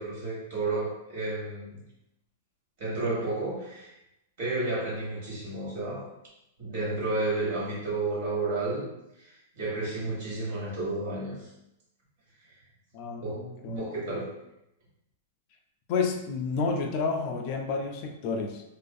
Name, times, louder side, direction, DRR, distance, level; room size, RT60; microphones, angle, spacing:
voice 1, 0.0-1.8 2.8-3.9 4.4-6.1 6.6-8.9 9.2-11.5 13.2-14.3, right 2 dB, 60° right, -6 dB, 1.4 m, -31 dB
voice 2, 12.9-13.8 15.9-18.6, left 4 dB, 45° left, 3 dB, 0.3 m, -30 dB
2.4 x 2.4 x 2.4 m, 0.86 s
hypercardioid pair, 145°, 0 cm